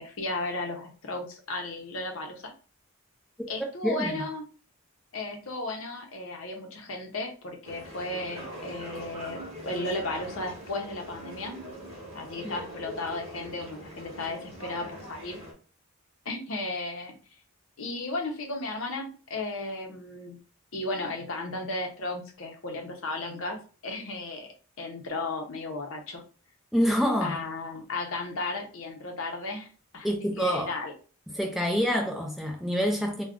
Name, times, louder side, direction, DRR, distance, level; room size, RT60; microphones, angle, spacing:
voice 1, 0.0-2.5 3.5-4.4 5.1-11.5 12.1-15.4 16.2-17.2 17.8-20.4 20.7-24.5 24.8-26.2 27.2-30.9, left 2 dB, 65° left, 0.6 m, -35 dB
voice 2, 3.8-4.2 26.7-27.4 30.0-30.7 31.3-33.2, equal, ahead, 0.4 m, -26 dB
sound 1, 7.6-15.5, right 1 dB, 30° right, 0.8 m, -42 dB
2.4 x 2.2 x 3.5 m
head